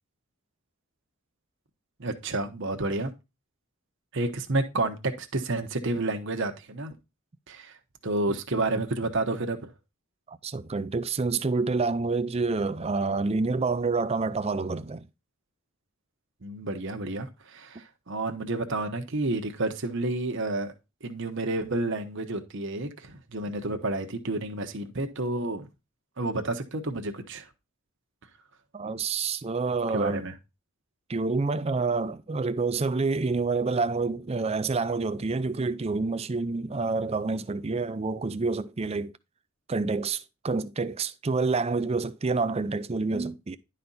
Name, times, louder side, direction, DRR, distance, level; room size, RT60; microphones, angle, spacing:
voice 1, 2.0-3.1 4.1-6.9 7.5-7.7 8.0-9.7 16.4-20.7 21.0-25.7 26.2-27.5 29.9-30.3, right 2 dB, 60° right, 1.0 m, -30 dB
voice 2, 10.3-15.1 28.7-30.2 31.1-39.1 39.7-43.6, right 4 dB, 30° right, 0.4 m, -28 dB
11.0 x 4.3 x 3.9 m
head